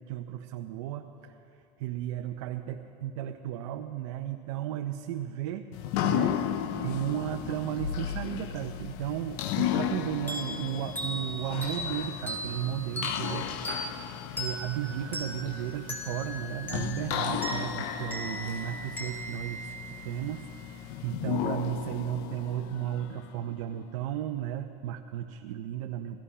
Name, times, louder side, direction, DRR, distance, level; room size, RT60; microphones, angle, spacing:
voice 1, 0.0-5.7 6.0-26.2, right 11 dB, 90° right, 4 dB, 0.7 m, -35 dB
sound 1, 5.7-23.5, left 10 dB, 65° left, 0.8 m, -35 dB
sound 2, 10.3-20.5, equal, 10° left, 2.0 m, -39 dB
18.0 x 13.5 x 5.6 m, 2.6 s
cardioid pair, 150°, 16 cm